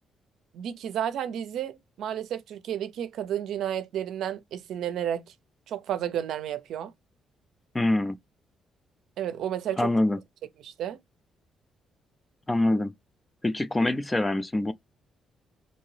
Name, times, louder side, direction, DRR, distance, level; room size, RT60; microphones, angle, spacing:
voice 1, 0.5-5.3 5.7-6.9 9.2-9.9 10.6-11.0, right 10 dB, 75° right, 0.5 m, -32 dB
voice 2, 7.7-8.2 9.8-10.2 12.5-12.9 13.4-14.7, left 1 dB, 15° left, 0.4 m, -24 dB
2.7 x 2.7 x 3.2 m
cardioid pair, 90°, 0 cm